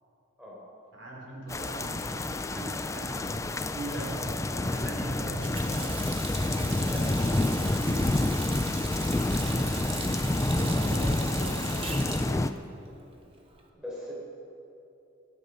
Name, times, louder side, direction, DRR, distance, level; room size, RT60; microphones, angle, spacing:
voice 1, 0.9-9.8 10.5-12.6, right 2 dB, 60° right, -3 dB, 3.7 m, -41 dB
sound 1, 1.5-12.5, left 2 dB, 15° left, 0.4 m, -28 dB
Water tap faucet, 5.2-13.7, right 4 dB, 25° right, 1.3 m, -40 dB
voice 2, 13.7-14.3, equal, 5° right, -6 dB, 4.7 m, -41 dB
25.5 x 10.0 x 5.5 m, 2.8 s
head